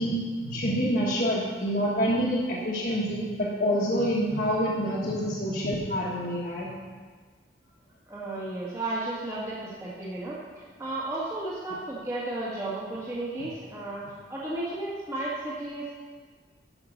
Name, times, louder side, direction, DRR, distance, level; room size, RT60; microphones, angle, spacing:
voice 1, 0.0-6.7, equal, 50° left, -7 dB, 1.6 m, -27 dB
voice 2, 8.1-9.6 9.8-14.0 14.3-15.9, right 2 dB, 15° right, -7 dB, 1.7 m, -33 dB
11.5 x 5.8 x 6.6 m, 1.5 s
head